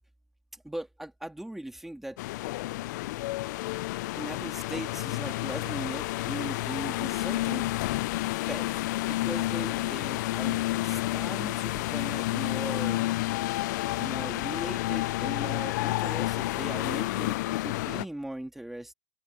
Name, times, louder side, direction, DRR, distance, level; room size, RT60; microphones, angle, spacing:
voice 1, 0.5-2.2 4.2-7.6 8.5-13.1 14.0-18.9, right 1 dB, 5° right, 2.3 m, -39 dB
sound 1, 2.2-18.0, left 18 dB, 65° left, 0.4 m, -30 dB
open air
supercardioid pair, 160°, 10 cm